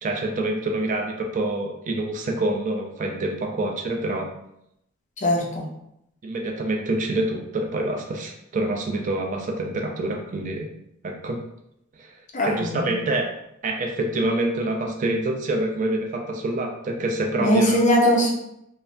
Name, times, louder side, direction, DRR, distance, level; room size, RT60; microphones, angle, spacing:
voice 1, 0.0-4.3 6.2-10.7 11.0-11.4 12.0-12.1 12.4-13.3 13.6-17.8, right 2 dB, 40° right, 2 dB, 0.3 m, -26 dB
voice 2, 5.2-5.7 12.3-13.0 17.4-18.3, equal, 35° left, 0 dB, 0.5 m, -21 dB
3.2 x 2.1 x 2.5 m, 0.80 s
head